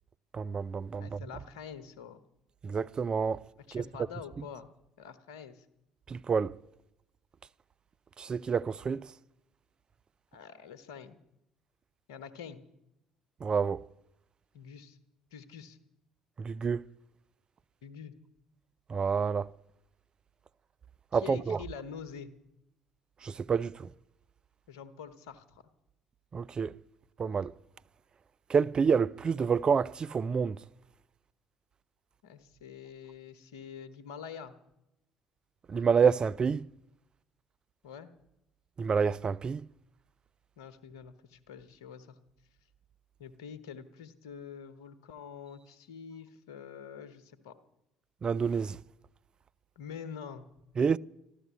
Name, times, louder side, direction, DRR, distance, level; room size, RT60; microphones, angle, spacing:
voice 1, 0.3-1.2 2.6-3.4 3.7-3.8 6.1-6.6 8.2-9.1 13.4-13.8 16.4-16.9 18.9-19.5 21.1-21.6 23.2-23.9 26.3-26.7 27.2-27.5 28.5-30.6 35.7-36.7 38.8-39.6 48.2-48.8 50.8-51.0, right 6 dB, 35° right, 0.4 m, -28 dB
voice 2, 1.0-2.2 3.7-4.7 5.0-5.7 10.3-11.2 12.1-12.6 14.5-15.0 15.3-15.8 17.8-18.1 21.1-22.3 24.7-25.6 32.2-34.5 37.8-38.1 40.6-42.2 43.2-47.5 49.8-50.5, left 7 dB, 80° left, 1.0 m, -46 dB
13.5 x 12.0 x 8.2 m
hypercardioid pair, 55°, 2 cm